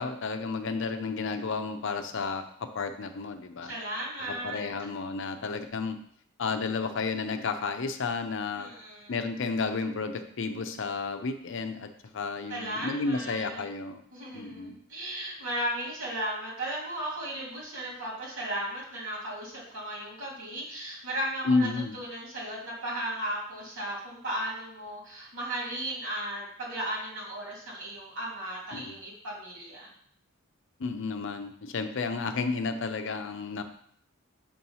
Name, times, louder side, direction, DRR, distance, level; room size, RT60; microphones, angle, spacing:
voice 1, 0.0-3.7 4.2-6.0 6.4-8.7 9.1-14.0 14.3-14.8 21.4-22.0 28.7-29.0 30.8-33.6, left 4 dB, 60° left, 7 dB, 0.6 m, -32 dB
voice 2, 3.6-4.6 8.5-9.1 12.5-13.7 14.1-21.7 21.9-29.9, right 1 dB, 70° right, -4 dB, 2.6 m, -35 dB
7.0 x 2.9 x 5.5 m, 0.64 s
head